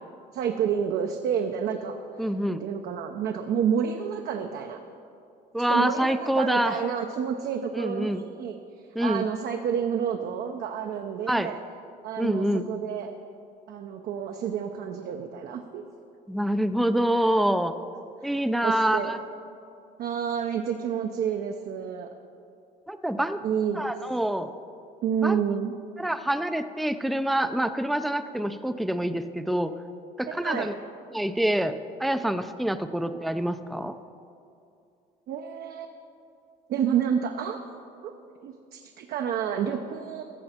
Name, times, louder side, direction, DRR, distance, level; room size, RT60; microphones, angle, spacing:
voice 1, 0.3-4.8 5.6-8.6 9.0-11.6 12.0-13.1 13.7-15.8 17.2-17.4 18.2-18.4 18.6-19.1 20.0-22.1 23.4-23.9 25.0-25.7 30.3-30.7 35.3-36.0 36.7-37.6 38.0-38.1 38.4-40.2, right 8 dB, 70° right, 4 dB, 0.6 m, -29 dB
voice 2, 2.2-2.6 5.5-6.8 7.7-8.2 9.0-9.3 11.3-11.5 12.2-12.7 16.3-17.7 18.2-19.2 22.9-23.4 23.7-24.5 25.2-25.4 26.0-29.7 30.2-30.7 31.1-31.7 32.0-34.0, right 1 dB, ahead, 10 dB, 0.4 m, -26 dB
14.0 x 7.1 x 4.3 m, 2.5 s
cardioid pair, 110°, 17 cm